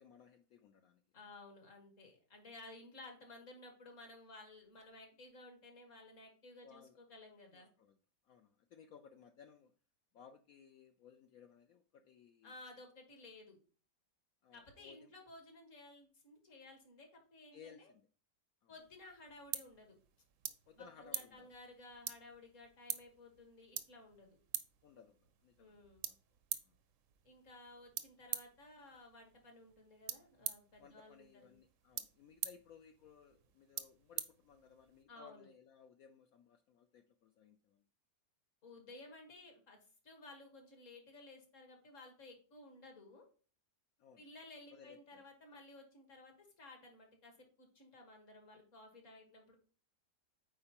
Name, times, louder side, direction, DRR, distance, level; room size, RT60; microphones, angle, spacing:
voice 1, 0.0-1.0 6.6-7.0 7.5-8.0 8.2-9.7 10.1-12.5 14.4-15.1 17.5-18.1 18.6-18.7 20.7-21.5 24.8-25.8 26.6-26.7 30.8-37.9 44.0-44.2 44.7-45.2, left 7 dB, 70° left, 7 dB, 0.9 m, -60 dB
voice 2, 1.1-7.7 12.4-13.6 14.5-17.9 18.7-20.0 20.8-24.4 25.6-26.1 27.2-31.6 35.1-35.5 38.6-39.8 40.0-43.2 44.2-49.6, left 2 dB, 50° left, 3 dB, 1.8 m, -56 dB
sound 1, 18.8-35.0, right 10 dB, 65° right, 0.8 m, -47 dB
8.7 x 4.4 x 2.9 m, 0.39 s
omnidirectional pair, 1.8 m